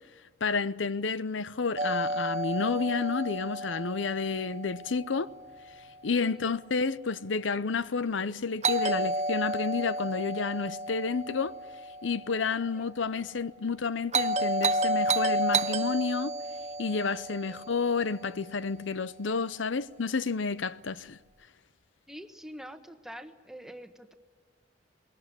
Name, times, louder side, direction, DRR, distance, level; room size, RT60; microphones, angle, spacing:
voice 1, 0.4-5.3 6.0-11.5 12.0-16.4 16.8-21.2, left 4 dB, 90° left, 0.7 m, -30 dB
Doorbell, 1.8-5.8 8.6-12.8 14.1-18.5, right 2 dB, 40° right, 0.8 m, -31 dB
voice 2, 22.1-24.1, equal, 5° right, 1.4 m, -45 dB
21.5 x 17.5 x 9.7 m
head